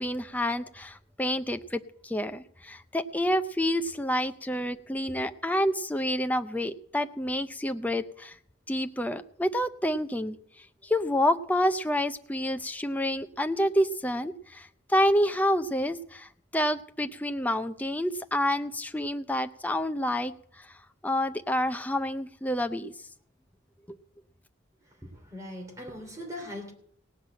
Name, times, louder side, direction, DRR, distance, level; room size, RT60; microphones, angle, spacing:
voice 1, 0.0-8.4 8.7-10.4 10.8-20.7 21.0-22.9, equal, 10° left, 8 dB, 0.4 m, -28 dB
voice 2, 25.0-26.7, left 1 dB, 15° right, 1 dB, 2.9 m, -40 dB
17.5 x 6.0 x 8.7 m, 0.64 s
head